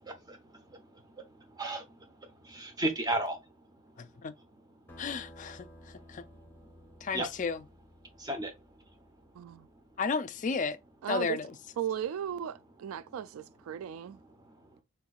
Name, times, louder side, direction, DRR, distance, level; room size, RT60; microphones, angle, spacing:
voice 1, 0.0-3.5 7.1-7.3 8.2-8.6 14.4-14.7, right 1 dB, 20° right, 0.9 m, -36 dB
voice 2, 4.0-4.3 5.0-5.7 6.1-6.2 7.0-7.6 10.0-10.8 11.1-11.5, left 5 dB, 35° left, 0.4 m, -32 dB
sound 1, 4.9-10.0, equal, 10° left, 1.2 m, -55 dB
voice 3, 9.3-9.7 11.0-11.4 11.8-14.2, right 9 dB, 80° right, 0.3 m, -36 dB
4.5 x 3.7 x 2.4 m
head